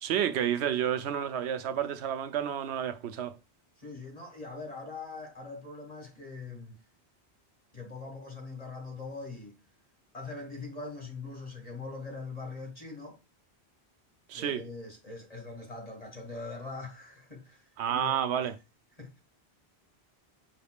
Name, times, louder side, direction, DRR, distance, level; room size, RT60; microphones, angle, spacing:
voice 1, 0.0-3.3 14.3-14.6 17.8-18.5, right 9 dB, 90° right, 0.9 m, -30 dB
voice 2, 3.8-6.8 7.7-9.5 10.1-13.2 14.3-18.5 19.0-19.2, left 3 dB, 35° left, 1.6 m, -42 dB
6.4 x 3.4 x 2.3 m
omnidirectional pair, 1.1 m